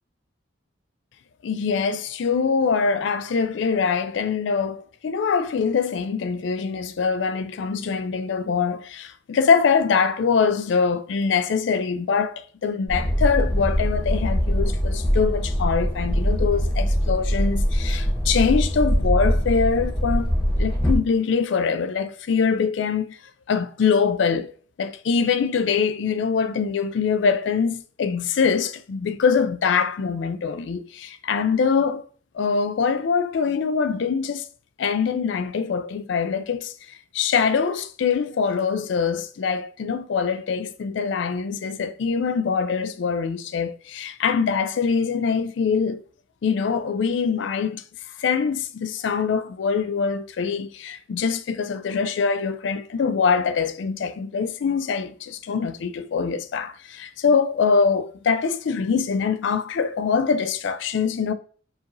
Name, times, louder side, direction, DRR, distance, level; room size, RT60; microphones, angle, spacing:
voice 1, 1.4-20.3 20.6-23.2 23.5-24.5 24.8-32.0 32.3-34.4 34.8-46.0 46.4-47.8 48.2-61.3, left 5 dB, 70° left, 0.4 m, -23 dB
sound 1, 12.9-21.0, equal, 20° left, 0.9 m, -22 dB
4.7 x 3.0 x 2.5 m
head